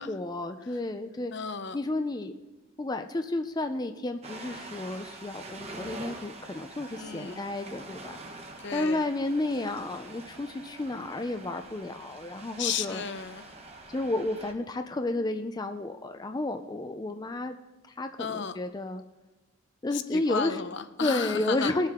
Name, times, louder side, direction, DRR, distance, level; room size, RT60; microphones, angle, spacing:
voice 1, 0.0-1.3 1.7-2.3 2.8-13.0 13.9-17.6 17.8-19.0 19.8-20.6 21.0-21.9, left 2 dB, 20° left, 7 dB, 0.4 m, -32 dB
voice 2, 1.3-1.8 7.0-7.4 8.6-9.1 12.6-13.5 18.2-18.6 19.9-21.7, left 6 dB, 60° left, 11 dB, 0.6 m, -33 dB
Ocean, 4.2-14.5, right 2 dB, 30° right, 1.2 m, -45 dB
19.5 x 7.5 x 3.7 m, 1.1 s
head